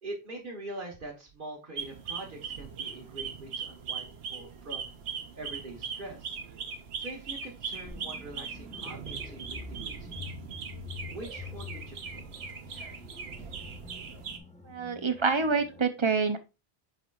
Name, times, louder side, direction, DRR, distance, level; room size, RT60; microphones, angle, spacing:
voice 1, 0.0-6.4 7.0-10.3 10.9-12.2, right 2 dB, 55° right, -3 dB, 1.5 m, -44 dB
sound 1, 1.8-14.4, right 6 dB, 80° right, 1.1 m, -40 dB
sound 2, 7.8-15.8, left 5 dB, 10° left, 0.8 m, -46 dB
voice 2, 14.7-16.4, right 4 dB, 35° right, 8 dB, 0.6 m, -27 dB
8.0 x 5.0 x 2.4 m, 0.28 s
omnidirectional pair, 1.1 m